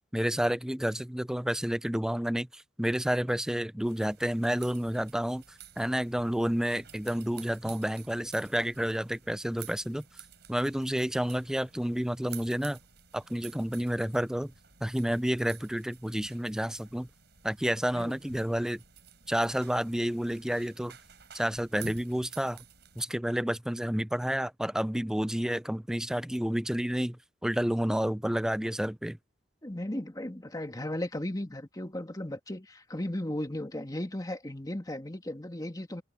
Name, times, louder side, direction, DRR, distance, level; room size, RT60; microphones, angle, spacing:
voice 1, 0.1-5.4 5.8-10.0 10.5-12.8 13.1-14.5 14.8-17.1 17.4-18.8 19.3-21.0 21.3-22.6 23.0-29.2, equal, 5° right, 0.4 m, -30 dB
sound 1, 3.8-23.0, right 7 dB, 60° right, 7.3 m, -52 dB
voice 2, 29.6-36.0, left 1 dB, 20° left, 2.1 m, -36 dB
head